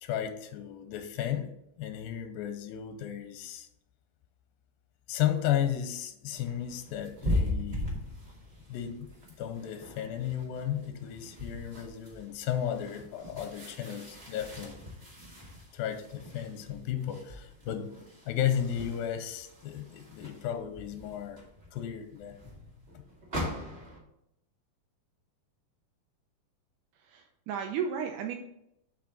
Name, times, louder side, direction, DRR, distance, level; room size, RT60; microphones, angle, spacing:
voice 1, 0.0-1.5 1.8-3.7 5.1-8.0 8.7-9.1 9.4-14.8 15.7-17.9 18.3-21.4 21.7-22.4, left 10 dB, 85° left, 8 dB, 2.4 m, -34 dB
sound 1, 6.3-24.0, left 1 dB, 30° right, 1.2 m, -40 dB
voice 2, 26.9-28.3, right 7 dB, 80° right, 3 dB, 1.9 m, -34 dB
7.4 x 5.6 x 3.9 m, 0.81 s
omnidirectional pair, 4.1 m